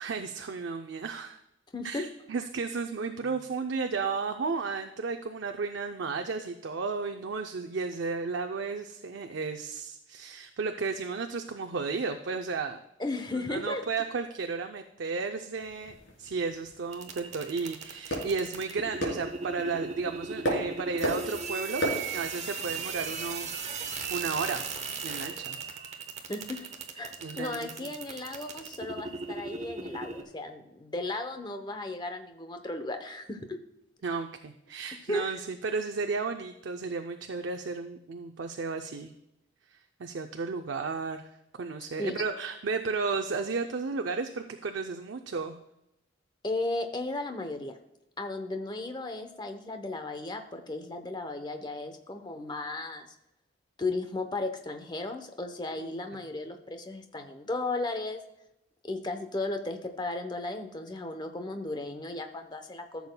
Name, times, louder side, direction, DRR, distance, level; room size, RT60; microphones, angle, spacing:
voice 1, 0.0-1.4 1.8-12.8 13.4-21.8 22.1-23.5 24.1-24.6 25.0-25.6 27.2-27.9 34.0-39.1 39.7-45.6 55.8-55.9, right 4 dB, 70° right, 6 dB, 0.5 m, -33 dB
voice 2, 1.7-2.1 3.2-3.4 13.0-13.8 26.3-26.7 26.9-33.6 35.1-35.3 42.0-42.2 46.4-47.7 48.2-53.1 53.8-58.2 58.8-63.1, left 2 dB, 25° left, 7 dB, 0.8 m, -35 dB
sound 1, 15.6-24.4, equal, 70° left, 3.3 m, -37 dB
sound 2, 16.9-30.2, right 5 dB, 35° right, 0.9 m, -37 dB
14.5 x 7.1 x 2.2 m, 0.85 s
head